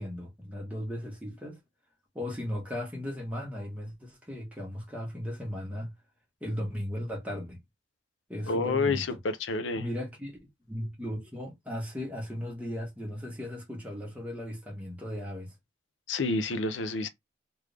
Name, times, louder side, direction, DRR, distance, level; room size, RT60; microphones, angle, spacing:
voice 1, 0.0-1.6 2.1-5.9 6.4-7.6 8.3-9.2 9.8-10.4 10.7-15.5, left 1 dB, 10° right, 1.3 m, -36 dB
voice 2, 8.5-9.9 16.1-17.1, left 3 dB, 85° left, 0.6 m, -29 dB
3.3 x 2.6 x 3.3 m
head